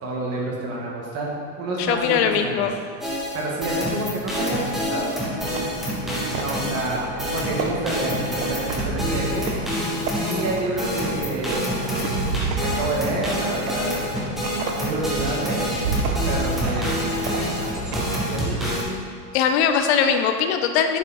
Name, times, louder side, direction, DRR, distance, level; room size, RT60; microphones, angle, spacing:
voice 1, 0.0-1.3 1.6-2.7 3.3-7.0 7.3-11.7 12.6-13.9 14.5-15.9 16.3-17.8 18.3-18.6, right 2 dB, 30° right, -3 dB, 1.9 m, -29 dB
voice 2, 1.8-2.7 19.3-21.0, left 7 dB, 45° left, 6 dB, 0.7 m, -20 dB
sound 1, 3.0-18.8, equal, ahead, 0.4 m, -27 dB
sound 2, 5.4-18.7, right 4 dB, 75° right, 1.3 m, -31 dB
10.5 x 5.3 x 4.4 m, 2.1 s
supercardioid pair, 150°, 48 cm